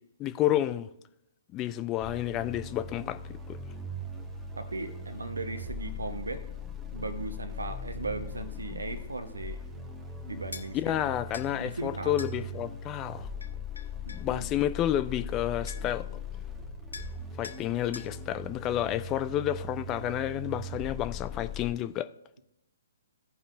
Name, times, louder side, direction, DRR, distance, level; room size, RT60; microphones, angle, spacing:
voice 1, 0.2-0.9 1.5-3.2 3.5-3.6 10.7-13.3 14.1-16.1 17.4-22.1, left 12 dB, 20° left, 0.3 m, -30 dB
sound 1, 2.0-21.7, left 2 dB, 5° right, 1.0 m, -40 dB
voice 2, 4.5-6.4 6.9-9.6 10.2-12.1 14.0-14.5, right 3 dB, 70° right, 0.9 m, -37 dB
sound 2, 10.5-10.7 11.3-11.5 12.2-12.4 13.4-14.3 15.3-15.4 15.7-16.0 16.9-17.2 17.4-17.6 17.9-18.1, left 4 dB, 75° left, 0.8 m, -43 dB
16.0 x 5.4 x 2.5 m
figure-of-eight pair, 125°, 0 cm